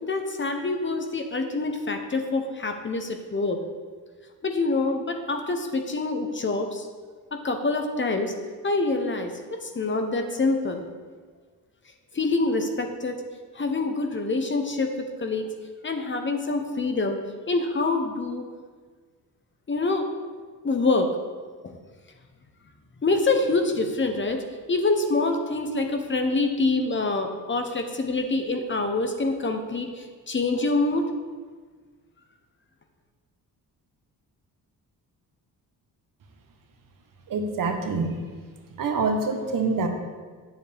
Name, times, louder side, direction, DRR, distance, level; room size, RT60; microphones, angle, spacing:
voice 1, 0.0-3.6 4.4-6.9 7.3-8.3 8.6-9.3 9.6-10.9 12.1-13.2 13.5-14.9 15.2-15.5 15.8-17.2 17.5-18.4 19.7-20.1 20.6-21.1 21.6-21.8 23.0-24.4 24.7-31.1, left 3 dB, 30° left, 5 dB, 1.0 m, -26 dB
voice 2, 37.3-38.1 38.8-39.9, right 4 dB, 60° right, 4 dB, 1.3 m, -25 dB
9.1 x 7.3 x 3.5 m, 1.5 s
cardioid pair, 90°, 38 cm